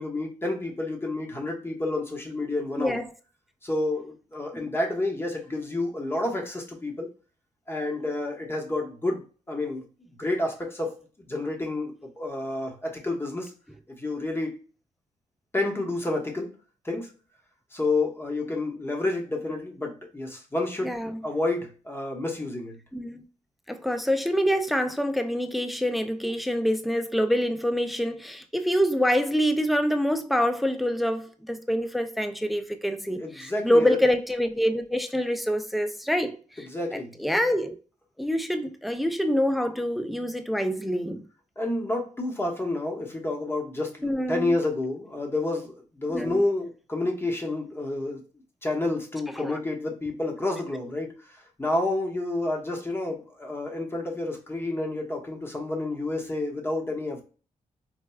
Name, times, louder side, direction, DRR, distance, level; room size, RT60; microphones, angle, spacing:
voice 1, 0.0-3.0 3.6-7.1 7.7-11.0 11.3-13.5 14.0-14.5 15.5-16.5 16.8-17.1 17.7-20.9 21.2-22.8 33.2-34.0 36.6-37.2 41.6-48.2 48.6-57.2, left 2 dB, 15° left, 1.0 m, -29 dB
voice 2, 20.8-21.2 22.9-23.2 23.7-37.8 38.2-41.3 44.0-44.6 46.1-46.4 49.4-49.6, equal, ahead, 0.4 m, -26 dB
4.2 x 2.3 x 2.3 m
cardioid pair, 100°, 13 cm